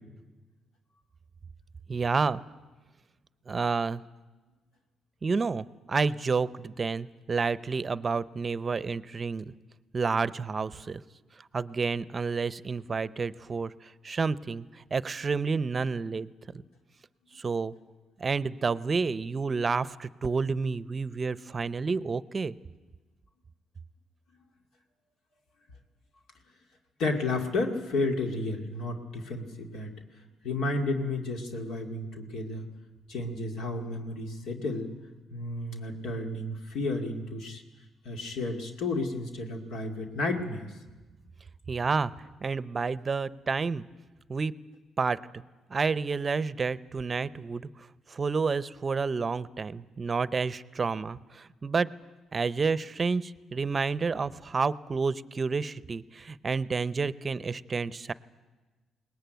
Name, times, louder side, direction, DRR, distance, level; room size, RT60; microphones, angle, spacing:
voice 1, 1.9-2.4 3.5-4.0 5.2-9.5 9.9-11.0 11.5-16.3 17.3-17.7 18.2-22.5 41.7-42.1 42.4-43.8 44.3-44.5 45.0-45.4 45.7-47.7 48.1-51.9 52.3-58.1, right 4 dB, 35° right, 17 dB, 0.6 m, -30 dB
voice 2, 27.0-29.9 30.4-32.7 33.1-34.9 35.3-37.6 38.0-40.7, left 2 dB, 80° left, 3 dB, 2.4 m, -32 dB
21.5 x 19.5 x 9.3 m, 1.2 s
cardioid pair, 90°, 0 cm